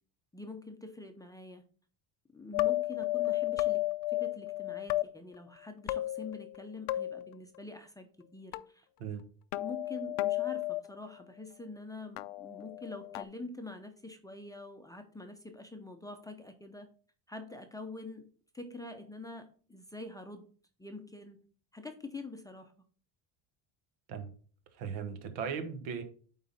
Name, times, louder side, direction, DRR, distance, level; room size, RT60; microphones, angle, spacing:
voice 1, 0.3-1.6 2.3-8.9 9.5-16.9 17.3-18.3 18.5-20.5 20.8-21.4 21.7-22.7, left 2 dB, 10° left, 4 dB, 0.5 m, -45 dB
sound 1, 2.5-5.0 5.9-6.6 6.9-7.3 8.5-8.6 9.5-10.8 12.2-13.2, left 16 dB, 60° left, 0.5 m, -32 dB
voice 2, 24.8-26.0, right 6 dB, 80° right, 8 dB, 1.5 m, -37 dB
9.3 x 3.9 x 4.0 m, 0.42 s
cardioid pair, 145°, 46 cm